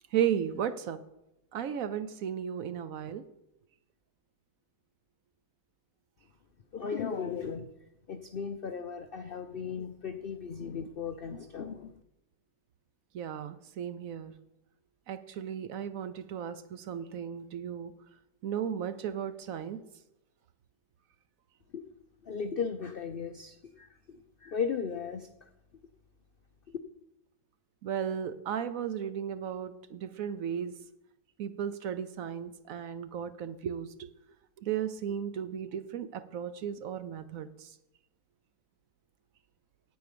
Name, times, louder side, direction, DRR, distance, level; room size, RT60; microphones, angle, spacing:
voice 1, 0.1-1.0 1.5-3.2 13.1-14.3 15.1-17.9 18.4-19.8 27.8-30.7 31.4-34.1 34.6-37.7, right 9 dB, 65° right, 13 dB, 1.0 m, -35 dB
voice 2, 6.7-7.7 8.1-11.9 21.7-21.8 22.2-25.3, left 6 dB, 70° left, 9 dB, 0.5 m, -36 dB
9.3 x 8.8 x 6.7 m, 0.87 s
omnidirectional pair, 1.7 m